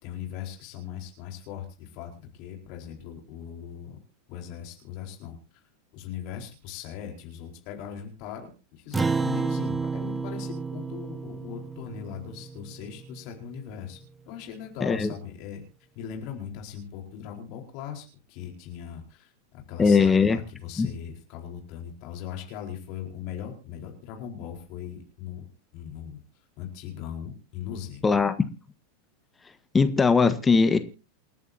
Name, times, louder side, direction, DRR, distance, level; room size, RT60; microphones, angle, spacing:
voice 1, 0.0-4.0 4.3-5.4 5.9-14.0 14.3-15.6 15.9-25.5 25.7-26.2 26.6-28.0, left 9 dB, 45° left, 1 dB, 4.5 m, -39 dB
Acoustic guitar, 8.9-13.6, right 4 dB, 10° right, 0.6 m, -31 dB
voice 2, 14.8-15.1 19.8-20.4 20.8-20.9 28.0-28.3 29.7-30.8, left 5 dB, 15° left, 10 dB, 1.4 m, -20 dB
28.5 x 11.0 x 2.8 m, 0.33 s
figure-of-eight pair, 85°, 0 cm